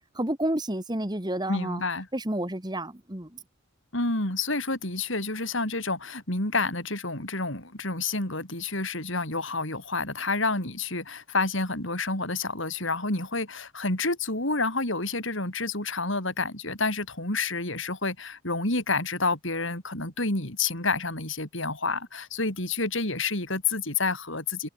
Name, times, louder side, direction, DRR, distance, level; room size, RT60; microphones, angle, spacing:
voice 1, 0.2-1.8 2.1-3.4, right 1 dB, 20° right, 1.9 m, -30 dB
voice 2, 1.5-2.1 3.9-24.7, left 3 dB, 65° left, 6.6 m, -29 dB
head